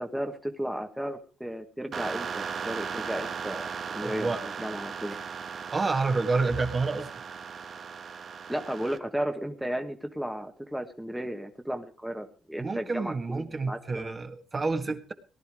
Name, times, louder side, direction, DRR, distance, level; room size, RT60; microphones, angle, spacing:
voice 1, 0.0-5.2 8.5-14.1, equal, 5° right, 5 dB, 1.4 m, -34 dB
sound 1, 1.9-9.0, right 6 dB, 55° right, 1.3 m, -37 dB
voice 2, 4.0-4.4 5.7-7.1 12.6-15.1, right 3 dB, 30° right, 6 dB, 1.8 m, -29 dB
18.5 x 11.0 x 4.8 m, 0.39 s
cardioid pair, 90°, 0 cm